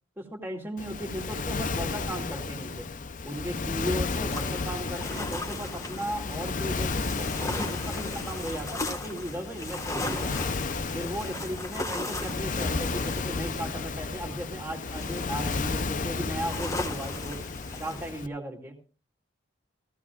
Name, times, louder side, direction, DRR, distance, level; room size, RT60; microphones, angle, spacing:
voice 1, 0.2-2.9 3.2-10.3 10.9-17.4 17.8-18.8, right 1 dB, 10° right, 1 dB, 2.4 m, -36 dB
Waves surf, 0.8-18.3, left 4 dB, 40° left, 0.6 m, -33 dB
sound 1, 4.3-18.1, left 2 dB, 15° left, 1.5 m, -38 dB
17.0 x 16.0 x 2.4 m, 0.35 s
head